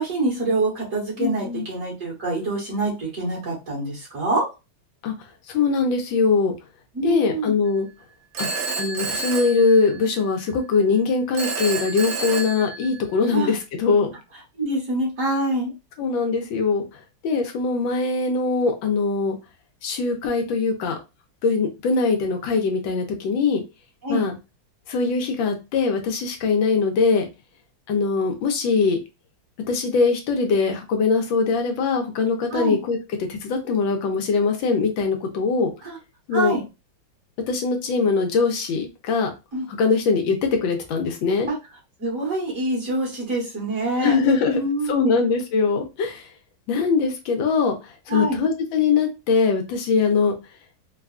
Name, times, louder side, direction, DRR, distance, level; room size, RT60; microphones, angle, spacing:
voice 1, 0.0-4.4 6.9-7.6 13.3-13.5 14.6-15.7 24.0-24.3 32.5-32.8 35.8-36.0 36.3-36.6 39.5-39.7 41.5-41.6 42.0-44.2 44.5-45.2 48.1-48.4, right 2 dB, 45° right, -4 dB, 1.9 m, -25 dB
voice 2, 1.2-1.7 5.0-5.1 5.5-6.5 7.0-7.9 8.4-8.5 8.8-14.1 16.0-16.8 17.2-19.4 19.8-21.0 21.4-23.6 24.1-24.3 24.9-27.3 27.9-29.0 29.7-33.0 33.3-35.7 36.3-36.6 37.5-39.3 39.7-41.5 44.0-44.6 44.9-46.2 46.7-50.3, left 4 dB, 80° left, 3 dB, 1.4 m, -22 dB
Telephone, 8.3-10.3 11.3-13.3, right 4 dB, 70° right, 0.8 m, -29 dB
4.0 x 2.3 x 2.3 m, 0.26 s
omnidirectional pair, 2.1 m